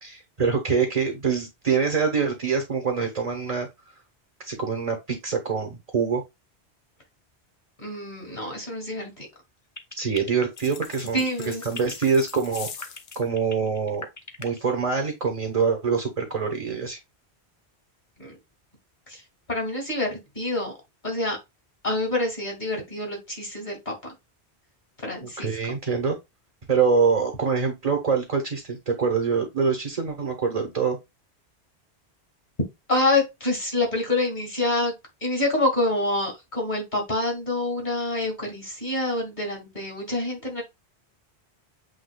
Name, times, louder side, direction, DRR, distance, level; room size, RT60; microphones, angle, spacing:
voice 1, 0.0-3.7 4.4-6.2 10.0-14.1 14.4-17.0 25.4-26.1 26.7-31.0, right 5 dB, 40° right, 1.0 m, -25 dB
voice 2, 7.8-9.3 11.0-11.6 18.2-18.4 19.1-19.2 19.5-20.7 21.0-21.4 21.8-24.1 25.0-25.5 32.9-34.9 35.2-40.6, left 2 dB, 45° left, 2.2 m, -27 dB
sound 1, 9.8-14.7, left 3 dB, 20° left, 0.5 m, -38 dB
sound 2, 10.5-13.3, left 7 dB, 70° left, 1.0 m, -42 dB
7.8 x 3.0 x 2.2 m
omnidirectional pair, 1.1 m